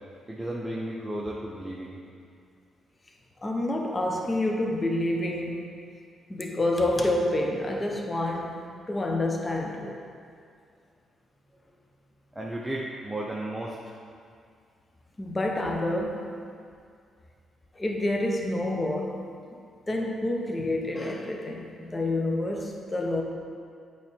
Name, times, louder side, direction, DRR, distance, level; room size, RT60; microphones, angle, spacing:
voice 1, 0.3-2.0 12.3-14.0, right 1 dB, 15° right, -4 dB, 0.8 m, -34 dB
voice 2, 3.4-5.6 6.3-8.5 8.9-10.0 15.2-16.3 17.7-19.2 19.5-19.6 19.9-23.2, left 1 dB, 25° left, 1 dB, 1.0 m, -28 dB
8.3 x 3.4 x 4.5 m, 2.3 s
hypercardioid pair, 50°, 0 cm